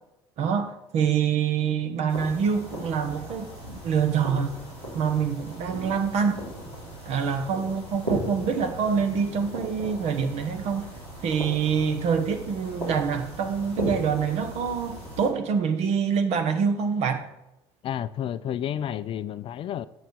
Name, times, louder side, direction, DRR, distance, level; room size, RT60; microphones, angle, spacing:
voice 1, 0.4-3.5 3.8-4.6 4.9-6.4 7.0-10.9 11.2-17.3, right 6 dB, 50° right, 1.2 m, -25 dB
sound 1, 2.1-15.3, right 1 dB, 85° right, 3.4 m, -37 dB
voice 2, 17.8-19.9, left 10 dB, 40° left, 0.4 m, -31 dB
8.1 x 7.9 x 4.7 m
figure-of-eight pair, 60°, 14 cm